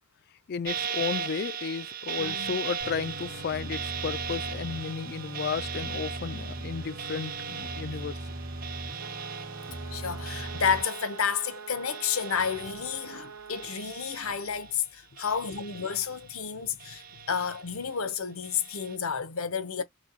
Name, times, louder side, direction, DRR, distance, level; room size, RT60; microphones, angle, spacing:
voice 1, 0.5-8.1, left 6 dB, 45° left, 0.3 m, -33 dB
sound 1, 0.7-13.2 13.5-14.7 15.2-16.4 16.8-17.9 18.4-19.0, right 6 dB, 40° right, 0.5 m, -38 dB
voice 2, 2.2-2.6 9.9-19.8, left 7 dB, 75° left, 0.8 m, -31 dB
sound 2, 2.8-10.8, right 1 dB, 60° right, 1.7 m, -39 dB
sound 3, 9.0-13.8, right 6 dB, 80° right, 0.7 m, -45 dB
6.2 x 2.3 x 2.7 m
head